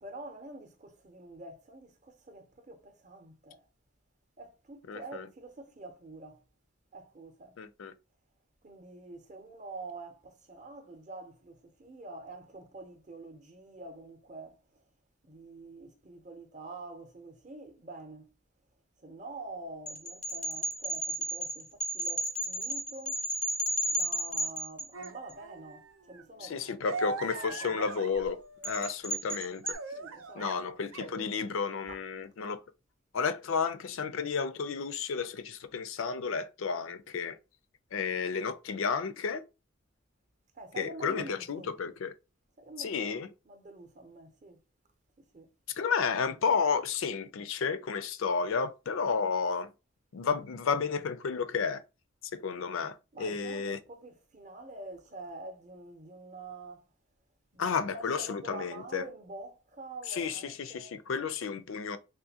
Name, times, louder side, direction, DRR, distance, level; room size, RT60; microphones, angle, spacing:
voice 1, 0.0-3.6 4.4-6.4 6.9-7.5 8.6-14.8 15.2-18.3 19.0-23.2 23.9-27.8 29.9-30.8 31.9-32.0 40.5-41.7 42.6-44.6 45.3-45.5 53.1-56.9 57.5-61.0, right 2 dB, 35° right, 0.6 m, -47 dB
voice 2, 4.9-5.2 7.6-7.9 26.4-29.8 30.4-32.6 33.1-37.4 37.9-39.4 40.8-42.1 42.8-43.3 45.8-49.7 50.1-51.8 52.3-53.8 57.6-59.0 60.1-62.0, left 5 dB, 70° left, 0.4 m, -32 dB
sound 1, 19.9-25.3 28.6-29.7, equal, 5° left, 0.4 m, -33 dB
sound 2, 24.9-28.9 29.2-30.6 30.9-31.2 31.5-31.6, right 3 dB, 80° right, 0.5 m, -41 dB
3.7 x 2.5 x 2.7 m
head